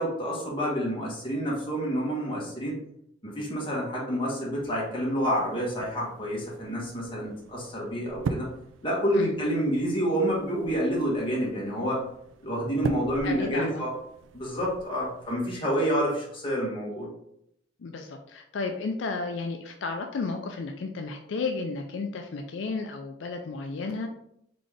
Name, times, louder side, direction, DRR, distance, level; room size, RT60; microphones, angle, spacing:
voice 1, 0.0-2.8 3.2-8.5 8.8-12.0 12.4-13.9 14.3-17.1, equal, 25° left, -4 dB, 1.5 m, -28 dB
sound 1, 4.6-15.4, right 4 dB, 85° right, 0.4 m, -41 dB
voice 2, 13.2-13.9 17.8-24.1, left 4 dB, 75° left, 4 dB, 0.4 m, -33 dB
4.0 x 3.7 x 3.4 m, 0.75 s
head